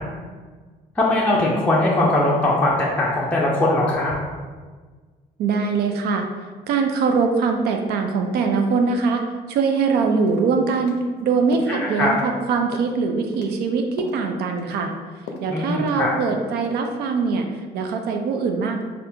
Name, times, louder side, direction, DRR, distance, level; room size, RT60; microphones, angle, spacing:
voice 1, 1.0-4.1 11.7-12.1 15.5-16.1, left 2 dB, 10° left, -5 dB, 0.5 m, -20 dB
voice 2, 5.4-6.3 6.7-14.9 15.4-18.8, right 4 dB, 70° right, 4 dB, 0.4 m, -22 dB
sound 1, 9.8-10.0 10.3-10.5 10.9-11.0 11.5-11.8 12.1-12.5 12.7-13.0 13.3-13.6 14.0-14.2 14.6-14.8 15.3-15.5 15.9-16.2 16.5-16.8, left 3 dB, 85° left, 0.5 m, -38 dB
2.7 x 2.4 x 3.5 m, 1.4 s
cardioid pair, 110°, 17 cm